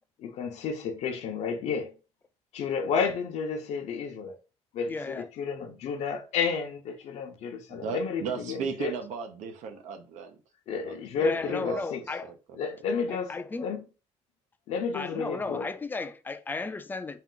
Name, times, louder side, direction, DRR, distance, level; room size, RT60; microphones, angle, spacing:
voice 1, 0.2-1.9 2.5-4.4 4.7-8.9 10.7-12.0 12.6-13.3 13.6-13.8 14.7-15.7, left 5 dB, 70° left, 0.7 m, -31 dB
voice 2, 4.9-5.3 11.2-12.3 13.1-13.7 14.9-17.2, left 3 dB, 15° left, 0.3 m, -35 dB
voice 3, 7.7-10.4 10.7-11.9 12.2-12.8, right 6 dB, 85° right, 0.8 m, -37 dB
4.3 x 2.5 x 3.7 m
cardioid pair, 155°, 12 cm